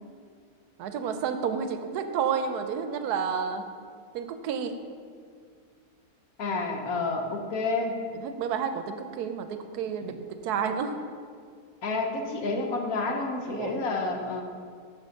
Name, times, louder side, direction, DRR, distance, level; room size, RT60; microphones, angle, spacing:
voice 1, 0.8-3.6 4.1-4.7 8.2-10.9 13.5-13.8, right 7 dB, 80° right, 8 dB, 1.1 m, -30 dB
voice 2, 6.4-8.0 10.0-10.2 11.8-14.4, left 3 dB, 65° left, 3 dB, 1.3 m, -29 dB
6.5 x 5.8 x 6.3 m, 2.1 s
omnidirectional pair, 1.7 m